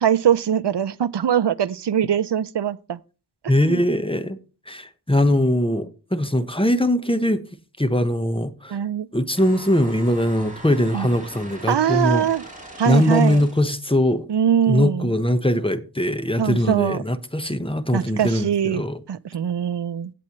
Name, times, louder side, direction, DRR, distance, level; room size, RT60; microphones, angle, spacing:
voice 1, 0.0-3.0 3.6-3.8 8.7-9.1 10.9-11.1 11.7-12.4 12.8-13.4 14.3-15.1 16.4-17.0 17.9-18.8 19.1-20.1, right 9 dB, 85° right, 0.6 m, -22 dB
voice 2, 3.5-4.4 4.7-7.4 7.8-8.8 9.1-12.2 12.8-14.3 14.7-19.0, left 1 dB, 15° left, 1.2 m, -21 dB
sound 1, 9.4-13.8, right 1 dB, 20° right, 5.0 m, -41 dB
17.0 x 7.6 x 3.1 m
wide cardioid pair, 50°, 41 cm